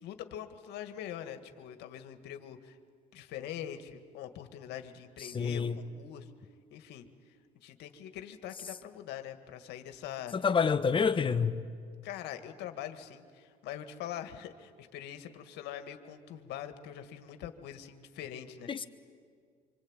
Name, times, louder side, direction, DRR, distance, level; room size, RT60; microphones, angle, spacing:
voice 1, 0.0-2.8 3.1-6.3 6.7-7.1 7.6-10.3 12.0-18.7, left 10 dB, 85° left, 8 dB, 1.9 m, -43 dB
voice 2, 5.3-5.8 10.3-11.5 18.7-18.8, left 6 dB, 30° left, 9 dB, 1.3 m, -27 dB
25.5 x 25.5 x 8.9 m, 2.1 s
cardioid pair, 110°, 17 cm